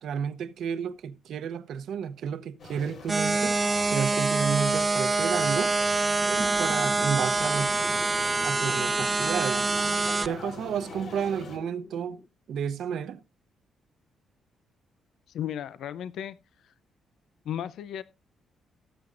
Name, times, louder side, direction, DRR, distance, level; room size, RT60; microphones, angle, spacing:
voice 1, 0.0-3.6 3.9-5.7 6.2-8.0 8.4-9.7 10.2-12.2 12.5-13.2, right 7 dB, 70° right, 0.8 m, -31 dB
sound 1, 2.6-11.6, left 3 dB, 60° left, 3.9 m, -43 dB
sound 2, 3.1-10.3, right 3 dB, 20° right, 0.5 m, -25 dB
sound 3, 6.4-12.3, left 3 dB, 30° left, 0.8 m, -43 dB
voice 2, 15.3-16.4 16.6-16.7 17.5-18.0, left 10 dB, 75° left, 0.5 m, -34 dB
18.5 x 7.7 x 2.5 m
cardioid pair, 120°, 0 cm